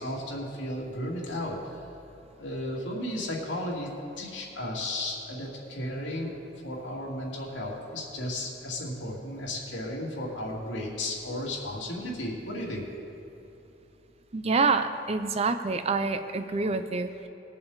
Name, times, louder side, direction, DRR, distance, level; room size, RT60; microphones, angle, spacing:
voice 1, 0.0-1.8 2.4-3.9 4.2-6.4 6.6-12.8, left 1 dB, 80° left, -4 dB, 2.5 m, -34 dB
voice 2, 14.3-17.3, right 4 dB, 35° right, 9 dB, 0.5 m, -27 dB
20.5 x 6.9 x 4.0 m, 3.0 s
head